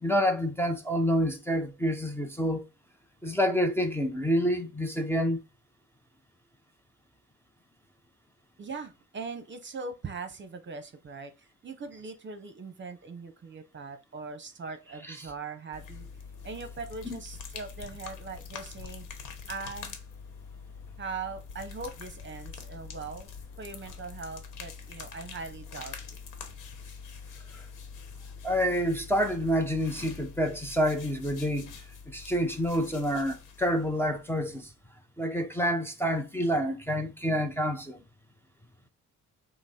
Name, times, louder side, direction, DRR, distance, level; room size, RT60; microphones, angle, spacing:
voice 1, 0.0-2.6 3.2-5.4 15.1-15.2 17.1-17.2 28.4-31.7 32.1-34.7 35.2-38.0, equal, 10° left, 0.7 m, -28 dB
voice 2, 8.6-16.1 16.4-19.1 19.5-20.0 21.0-26.2, right 4 dB, 40° right, 0.9 m, -41 dB
sound 1, 15.7-34.6, left 6 dB, 90° left, 1.1 m, -45 dB
5.8 x 2.1 x 4.2 m
cardioid pair, 90°, 30 cm